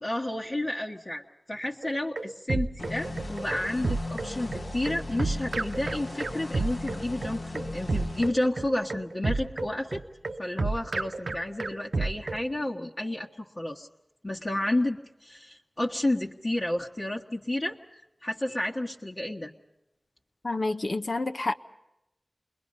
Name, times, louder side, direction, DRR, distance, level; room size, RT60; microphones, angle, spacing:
voice 1, 0.0-1.2 1.5-10.0 10.4-13.9 14.2-19.5, left 1 dB, 40° left, 1.4 m, -31 dB
sound 1, 1.8-12.5, right 3 dB, 75° right, 0.7 m, -31 dB
sound 2, 2.8-8.3, left 2 dB, 80° left, 1.5 m, -38 dB
voice 2, 20.4-21.5, left 2 dB, 60° left, 0.8 m, -28 dB
29.0 x 21.5 x 5.4 m
wide cardioid pair, 70°, 0 cm